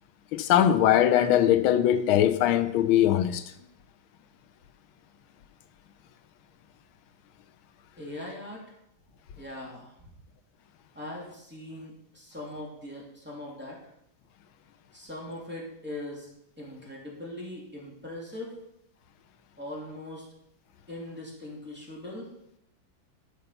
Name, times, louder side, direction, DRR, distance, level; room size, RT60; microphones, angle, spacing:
voice 1, 0.3-3.4, left 11 dB, 90° left, 1.5 m, -21 dB
voice 2, 8.0-8.8 9.4-10.0 10.9-13.8 14.9-16.3 16.6-18.5 19.6-20.3 20.9-22.3, left 1 dB, 5° right, 2.7 m, -40 dB
12.0 x 5.5 x 5.6 m
omnidirectional pair, 2.2 m